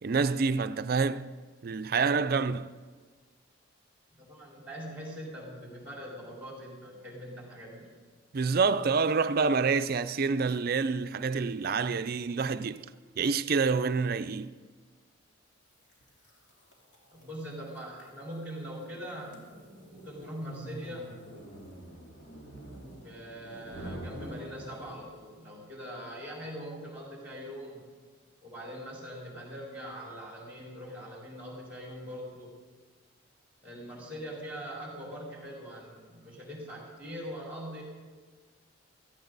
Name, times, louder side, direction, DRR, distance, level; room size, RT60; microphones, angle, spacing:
voice 1, 0.0-1.3 1.6-2.7 8.3-12.9 13.2-14.5, right 4 dB, 45° right, 0.4 m, -27 dB
voice 2, 4.2-7.9 17.1-19.4 19.9-21.2 23.0-27.9 28.4-32.6 33.6-37.8, equal, 5° right, 4.4 m, -42 dB
sound 1, 15.9-25.3, right 1 dB, 55° left, 3.0 m, -46 dB
16.5 x 14.5 x 4.0 m
head